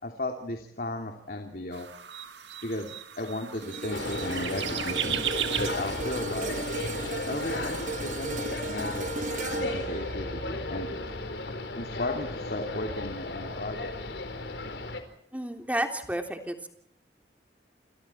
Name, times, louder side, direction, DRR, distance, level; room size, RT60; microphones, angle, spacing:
voice 1, 0.0-1.9 2.6-5.2 5.5-6.6 7.3-10.9 11.8-13.9, left 1 dB, 55° left, 3 dB, 3.0 m, -35 dB
sound 1, 1.7-7.9, right 10 dB, 85° right, 1.5 m, -37 dB
sound 2, 3.6-12.0 12.4-12.6, right 3 dB, 45° right, 1.0 m, -37 dB
sound 3, 3.9-15.0, left 2 dB, 85° left, 4.4 m, -35 dB
voice 2, 15.3-16.7, right 1 dB, 10° right, 4 dB, 3.3 m, -31 dB
29.5 x 27.5 x 4.5 m, 0.67 s
head